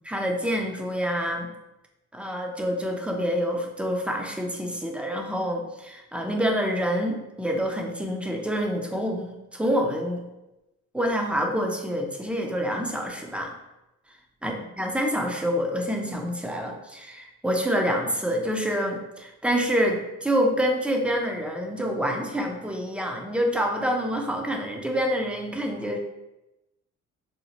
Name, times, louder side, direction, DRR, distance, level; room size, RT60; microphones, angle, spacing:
voice 1, 0.1-1.5 2.1-10.2 10.9-13.5 14.4-26.0, equal, 5° right, 1 dB, 0.5 m, -27 dB
2.8 x 2.0 x 4.0 m, 0.95 s
cardioid pair, 90°, 30 cm